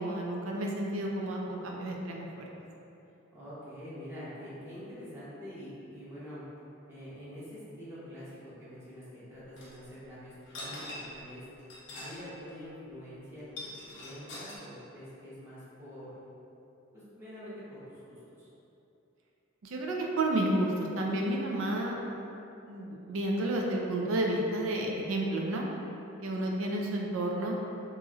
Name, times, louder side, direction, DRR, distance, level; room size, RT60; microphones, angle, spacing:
voice 1, 0.0-2.4 19.6-22.0 22.6-25.7 26.2-27.6, right 1 dB, 85° right, 0 dB, 0.4 m, -31 dB
voice 2, 3.3-6.4 6.9-11.4 11.9-13.7 14.0-16.2 16.9-18.5, equal, 10° right, -12 dB, 0.8 m, -45 dB
sound 1, 9.6-9.7 10.4-11.2 11.6-12.2 12.5-12.6 13.4-14.6, left 2 dB, 60° left, 0.6 m, -43 dB
3.0 x 2.6 x 2.4 m, 2.9 s
head